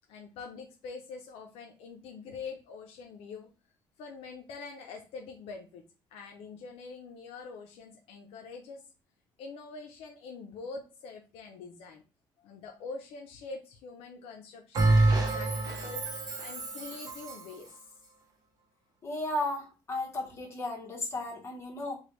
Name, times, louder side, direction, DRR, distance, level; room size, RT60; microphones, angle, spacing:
voice 1, 0.1-3.5 4.0-5.8 6.1-8.9 9.4-12.0 12.4-16.0 16.4-17.9, left 4 dB, 80° left, 3 dB, 0.5 m, -44 dB
Bell, 14.7-17.5, right 2 dB, 40° right, 0.7 m, -27 dB
voice 2, 19.0-22.0, left 2 dB, 25° left, 0 dB, 1.0 m, -34 dB
3.1 x 2.2 x 3.0 m, 0.31 s
cardioid pair, 135°, 10 cm